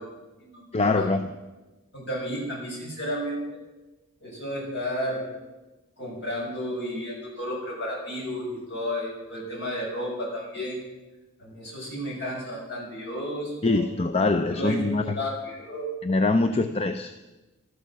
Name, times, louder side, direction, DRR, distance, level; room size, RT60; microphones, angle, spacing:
voice 1, 0.7-1.3 13.6-15.2 16.0-17.1, left 3 dB, 30° left, 8 dB, 0.5 m, -23 dB
voice 2, 1.9-3.4 4.2-5.3 6.0-10.8 11.4-13.8 14.5-15.9 16.6-16.7, equal, 50° left, -3 dB, 6.8 m, -32 dB
14.0 x 13.0 x 7.4 m, 1.1 s
head